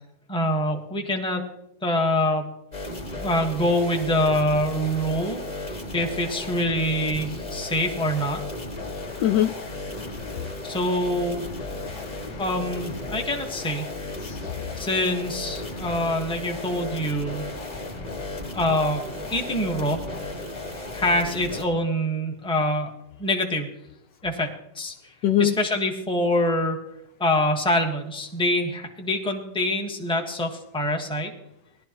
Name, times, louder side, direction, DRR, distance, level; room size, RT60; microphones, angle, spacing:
voice 1, 0.3-1.5 1.8-2.5 3.1-5.4 5.7-8.4 10.6-11.4 12.4-13.9 14.7-17.4 18.5-19.0 19.3-20.0 20.9-22.9 23.2-23.7 24.2-25.1 25.4-26.8 27.2-31.3, left 1 dB, 5° left, 2 dB, 1.1 m, -25 dB
sound 1, 2.7-21.7, left 2 dB, 20° left, 1.8 m, -35 dB
voice 2, 8.8-10.5 11.7-12.4 14.2-14.9 15.6-15.8 17.6-18.5 25.2-25.5, left 11 dB, 70° left, 9 dB, 1.1 m, -28 dB
18.5 x 12.0 x 3.0 m, 0.80 s
omnidirectional pair, 2.1 m